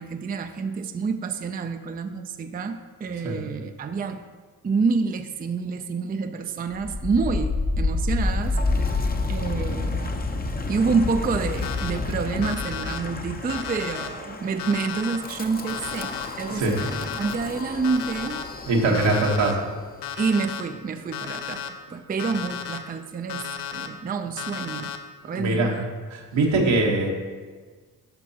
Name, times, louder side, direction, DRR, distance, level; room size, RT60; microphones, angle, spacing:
voice 1, 0.0-4.2 4.6-10.2 10.7-18.4 18.8-19.3 20.2-23.5 23.7-25.0 25.2-25.9, right 4 dB, 20° right, 7 dB, 0.4 m, -28 dB
Wind, 6.7-19.7, left 3 dB, 20° left, 0.7 m, -29 dB
Alarm, 11.6-11.9 12.4-13.0 13.5-14.1 14.6-15.2 15.7-16.3 16.8-17.3 17.8-18.4 18.9-19.5 20.0-20.6 21.1-21.7 22.2-22.8 23.3-23.9 24.4-25.0, left 9 dB, 60° left, 0.7 m, -33 dB
voice 2, 18.7-19.6 25.3-25.7 26.1-27.1, right 2 dB, 70° right, 0 dB, 1.4 m, -22 dB
11.0 x 5.3 x 2.9 m, 1.5 s
hypercardioid pair, 40°, 46 cm